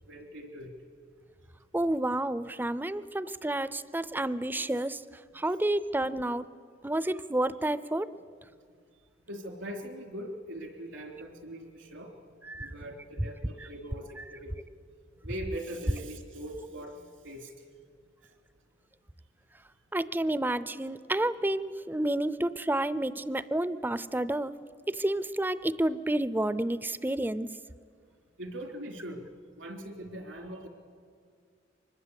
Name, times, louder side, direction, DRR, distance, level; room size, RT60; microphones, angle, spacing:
voice 1, 0.1-0.7 9.3-14.6 15.2-17.5 18.2-18.3 28.4-29.3 29.6-30.7, equal, 85° right, 4 dB, 3.5 m, -41 dB
voice 2, 1.7-5.0 5.3-6.5 6.8-8.1 12.4-12.7 14.2-14.3 19.9-24.6 24.9-27.5, right 1 dB, 10° right, 16 dB, 0.5 m, -30 dB
24.5 x 21.0 x 8.3 m, 2.1 s
head